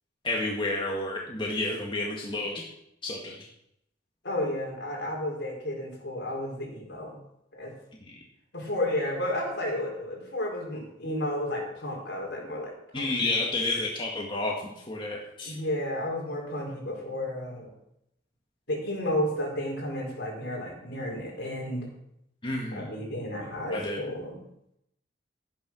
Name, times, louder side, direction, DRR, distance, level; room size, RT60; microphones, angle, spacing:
voice 1, 0.2-2.7 3.0-3.4 12.9-14.6 14.9-15.5 22.4-22.9 23.7-24.0, left 2 dB, 30° left, -2 dB, 1.9 m, -30 dB
voice 2, 4.2-7.2 7.5-7.7 8.5-13.1 15.4-17.7 18.7-21.9 22.7-24.4, left 1 dB, 65° left, 0 dB, 4.8 m, -32 dB
12.5 x 10.0 x 6.2 m, 0.79 s
head